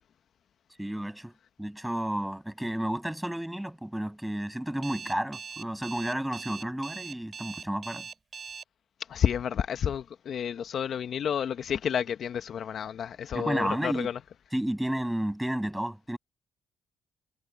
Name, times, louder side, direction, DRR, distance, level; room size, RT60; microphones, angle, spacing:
voice 1, 0.8-1.3 1.6-8.1 13.3-14.1 14.5-16.2, right 1 dB, 5° right, 7.7 m, -31 dB
Alarm, 4.8-8.6, right 5 dB, 45° right, 6.4 m, -41 dB
voice 2, 9.1-14.1, left 8 dB, 60° left, 1.0 m, -30 dB
cardioid pair, 90°, 0 cm